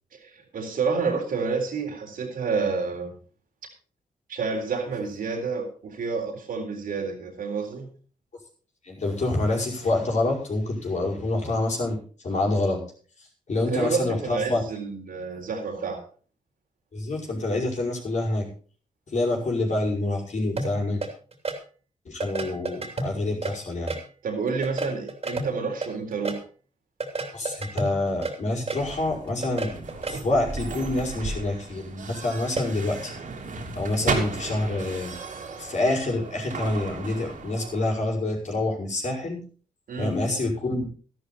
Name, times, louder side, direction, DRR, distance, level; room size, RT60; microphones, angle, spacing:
voice 1, 0.1-3.2 4.3-7.9 13.6-16.0 24.2-26.4 39.9-40.1, right 5 dB, 85° right, 2 dB, 3.8 m, -29 dB
voice 2, 8.9-12.0 12.2-12.8 13.5-14.6 16.9-18.5 19.1-21.0 22.1-23.9 27.3-29.7 30.1-33.1 33.7-35.1 35.6-39.4 40.0-40.8, left 2 dB, 55° left, 0 dB, 5.4 m, -27 dB
sound 1, 20.6-21.6 22.2-24.1 24.5-26.4 27.0-28.9 29.3-30.2 32.6-32.7, right 3 dB, 45° right, 3.1 m, -31 dB
sound 2, 28.8-38.0, right 4 dB, 70° right, 3.3 m, -35 dB
13.0 x 12.0 x 4.2 m, 0.41 s
cardioid pair, 75°, 14 cm